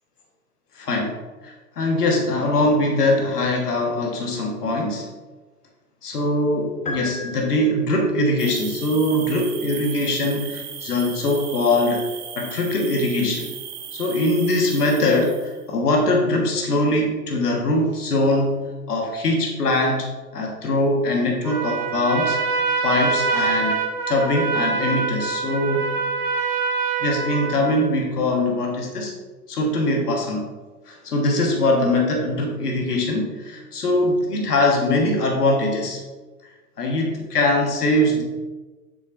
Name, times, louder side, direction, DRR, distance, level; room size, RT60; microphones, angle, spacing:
voice 1, 0.7-5.1 6.0-12.0 12.3-13.5 13.9-18.6 18.9-20.1 20.3-22.4 22.8-23.8 24.1-25.8 27.0-29.1 29.5-30.5 30.9-36.0 36.8-38.2, left 1 dB, 80° left, 0 dB, 1.5 m, -22 dB
sound 1, 6.9-8.2, left 2 dB, 15° left, 1.1 m, -33 dB
sound 2, 8.4-15.6, right 8 dB, 25° right, 0.7 m, -36 dB
Trumpet, 21.4-27.9, right 4 dB, 75° right, 1.3 m, -25 dB
7.8 x 6.5 x 2.6 m, 1.3 s
figure-of-eight pair, 100°, 46 cm